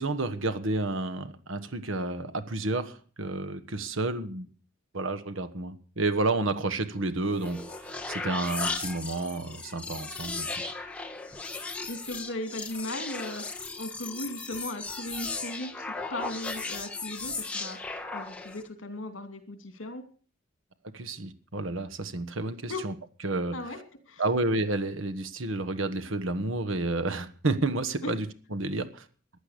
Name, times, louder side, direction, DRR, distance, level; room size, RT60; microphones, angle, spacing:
voice 1, 0.0-4.5 4.9-10.7 20.9-22.9 23.2-23.6 24.2-28.3 28.5-29.1, right 2 dB, 70° right, 9 dB, 1.2 m, -30 dB
sound 1, 7.2-18.7, left 3 dB, 5° left, 1.3 m, -36 dB
voice 2, 11.9-20.0 22.7-22.8 23.5-23.8 24.1-24.2 28.0-28.1, left 1 dB, 70° left, 7 dB, 2.8 m, -37 dB
15.0 x 11.0 x 6.7 m, 0.41 s
head